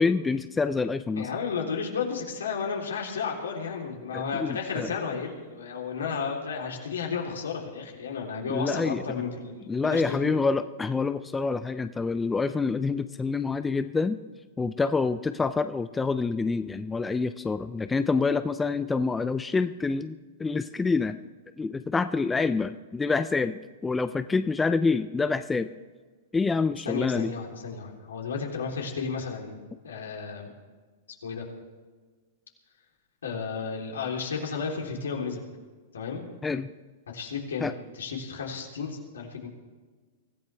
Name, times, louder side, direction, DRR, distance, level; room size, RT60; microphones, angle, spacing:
voice 1, 0.0-1.3 4.1-4.9 8.5-9.2 9.7-14.2 14.6-21.2 21.6-25.7 26.3-27.3 36.4-36.7 37.6-37.7, left 4 dB, 10° left, 11 dB, 0.5 m, -27 dB
voice 2, 1.2-10.4 26.9-30.5 31.2-31.5 33.2-35.5 35.9-36.3 37.1-39.5, left 5 dB, 80° left, -1 dB, 3.6 m, -33 dB
24.0 x 15.0 x 3.5 m, 1.4 s
hypercardioid pair, 110°, 0 cm